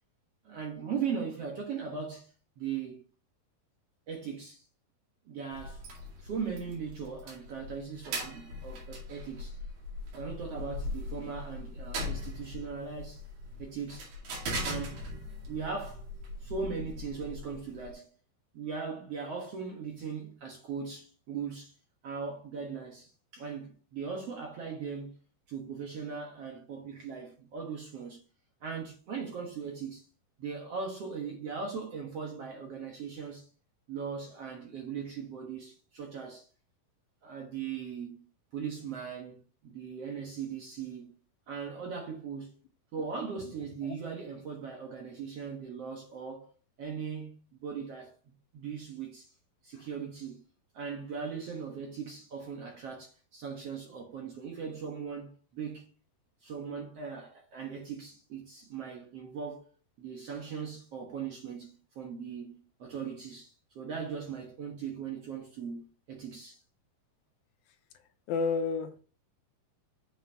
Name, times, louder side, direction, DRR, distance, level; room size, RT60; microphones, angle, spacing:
voice 1, 0.4-2.3 2.6-3.0 4.1-4.6 5.2-5.8 6.2-9.6 10.1-13.2 13.6-14.1 14.6-16.0 16.4-18.1 18.5-21.7 22.0-25.2 25.5-28.2 28.6-30.0 30.4-33.5 33.9-36.5 37.2-38.3 38.5-41.1 41.5-42.5 42.9-49.3 49.6-50.4 50.7-55.9 56.4-59.7 60.0-66.6, right 6 dB, 55° right, 1.8 m, -39 dB
sound 1, 5.5-17.9, left 1 dB, 75° right, 4.1 m, -40 dB
voice 2, 68.3-69.0, left 4 dB, 80° left, 2.5 m, -31 dB
8.1 x 5.8 x 2.9 m
omnidirectional pair, 4.3 m